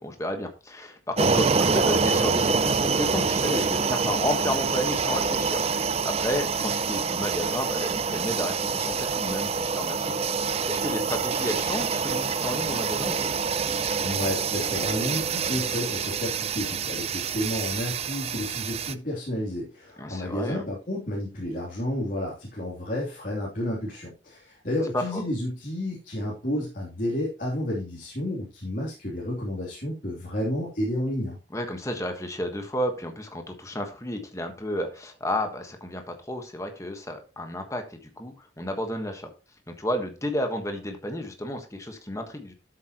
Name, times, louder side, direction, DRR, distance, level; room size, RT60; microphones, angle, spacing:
voice 1, 0.0-10.1 10.4-13.3 20.0-20.6 24.9-25.2 31.5-39.3 39.7-42.5, left 1 dB, 15° left, 5 dB, 1.4 m, -32 dB
sound 1, 1.2-18.9, right 5 dB, 35° right, 0.5 m, -26 dB
voice 2, 14.0-31.4, left 1 dB, 45° left, -4 dB, 3.2 m, -31 dB
12.5 x 7.8 x 3.0 m, 0.31 s
head